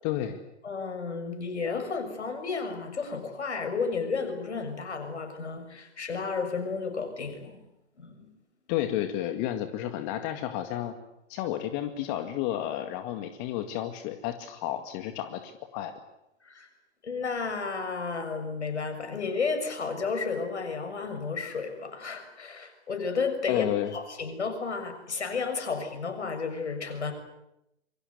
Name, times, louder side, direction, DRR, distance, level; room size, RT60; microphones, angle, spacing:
voice 1, 0.0-0.4 8.7-10.9 11.3-15.9 23.5-23.9, left 12 dB, 40° left, 7 dB, 2.1 m, -31 dB
voice 2, 0.6-7.6 8.0-8.3 16.4-16.7 17.0-23.7 23.9-27.1, left 5 dB, 75° left, 7 dB, 6.5 m, -32 dB
27.0 x 23.5 x 8.1 m, 0.85 s
figure-of-eight pair, 110°, 34 cm